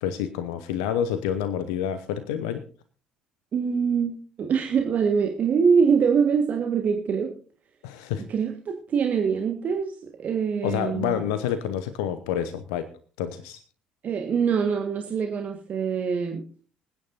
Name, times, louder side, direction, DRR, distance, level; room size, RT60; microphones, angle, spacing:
voice 1, 0.0-2.6 7.8-8.2 10.6-12.9 13.2-13.6, left 9 dB, 70° left, 12 dB, 0.8 m, -28 dB
voice 2, 3.5-7.3 8.3-9.9 10.2-11.2 14.0-16.4, right 6 dB, 45° right, 4 dB, 1.6 m, -24 dB
26.0 x 9.5 x 2.7 m, 0.38 s
figure-of-eight pair, 55°, 4 cm